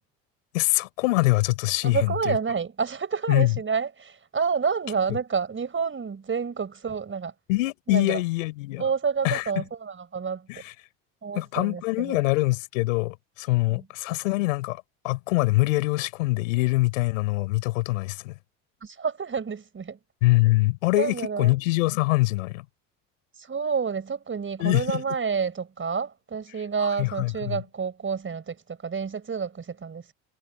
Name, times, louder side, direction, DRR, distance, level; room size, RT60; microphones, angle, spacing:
voice 1, 0.5-2.4 3.3-3.5 7.5-8.8 9.2-9.6 10.5-10.7 11.3-18.3 20.2-22.6 24.6-25.0 27.0-27.6, left 21 dB, 90° left, 4.8 m, -24 dB
voice 2, 1.8-7.3 7.9-8.2 8.8-10.6 11.2-12.2 13.6-13.9 18.8-20.0 20.9-21.6 23.4-30.1, right 6 dB, 30° right, 5.2 m, -29 dB
supercardioid pair, 75°, 38 cm